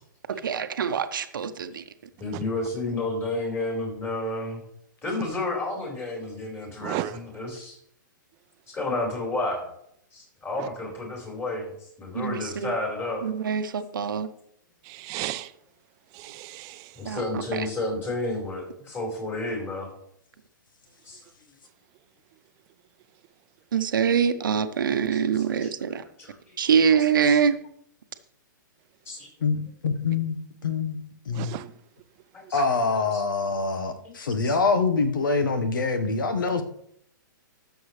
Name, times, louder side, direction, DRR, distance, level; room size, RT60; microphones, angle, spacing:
voice 1, 0.3-1.8 12.1-12.7 13.2-14.3 17.0-17.7 23.7-26.0 26.6-27.6, right 7 dB, 75° right, 0.9 m, -24 dB
voice 2, 2.2-4.6 5.0-7.8 8.7-9.7 10.1-11.7 12.0-13.2 16.9-19.9 21.1-21.2 25.6-25.7 26.2-26.3 27.2-27.4 29.1-29.3 32.3-32.6 33.1-33.2 34.0-34.1 36.3-36.4, left 2 dB, 20° left, 4.6 m, -31 dB
voice 3, 6.8-7.2 10.6-10.7 14.9-15.5 16.2-16.8 31.3-31.7, right 15 dB, 35° right, 0.6 m, -33 dB
voice 4, 29.4-30.4 30.6-31.0 31.2-31.6 32.5-36.6, left 4 dB, 75° left, 1.3 m, -25 dB
14.0 x 7.1 x 3.3 m
hypercardioid pair, 130°, 11 cm